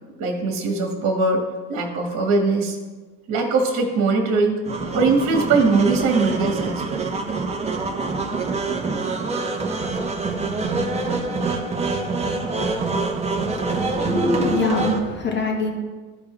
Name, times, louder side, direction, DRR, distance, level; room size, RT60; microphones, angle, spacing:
voice 1, 0.2-2.8 3.3-4.6 4.9-7.0, right 3 dB, 40° right, 2 dB, 1.7 m, -21 dB
sound 1, 4.7-15.0, right 3 dB, 15° right, 1.0 m, -25 dB
voice 2, 13.6-15.7, left 2 dB, 25° left, 2 dB, 1.5 m, -23 dB
14.0 x 4.6 x 3.2 m, 1.4 s
hypercardioid pair, 100°, 44 cm